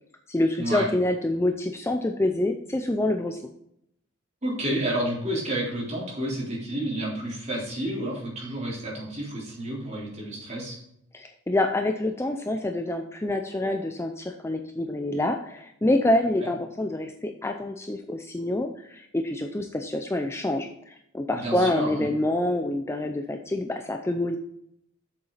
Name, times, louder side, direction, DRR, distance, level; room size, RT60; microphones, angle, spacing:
voice 1, 0.3-3.5 11.1-24.4, left 1 dB, 10° left, 4 dB, 0.5 m, -27 dB
voice 2, 4.4-10.8 16.4-16.5 21.4-22.1, right 1 dB, 30° right, -5 dB, 3.7 m, -30 dB
8.0 x 7.2 x 4.0 m, 0.75 s
head